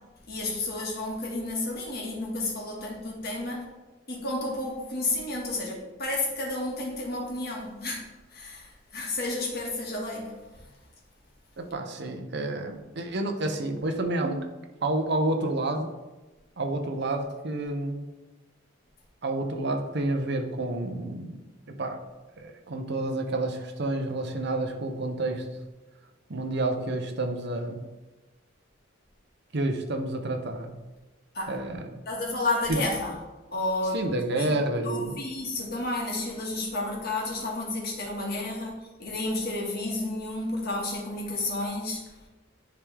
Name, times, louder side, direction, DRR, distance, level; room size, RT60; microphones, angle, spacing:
voice 1, 0.3-3.6 4.1-10.7 31.3-31.6 32.1-33.2 33.5-34.1 34.3-34.5 34.8-38.7 39.0-42.1, left 2 dB, 50° left, -2 dB, 1.6 m, -31 dB
voice 2, 11.6-14.4 14.8-15.9 16.6-18.1 19.2-21.4 21.7-22.0 22.4-25.5 26.3-27.8 29.5-30.7 31.5-31.9 32.7-32.8 33.9-35.2, right 2 dB, 55° right, 4 dB, 0.7 m, -29 dB
9.9 x 3.6 x 3.4 m, 1.2 s
head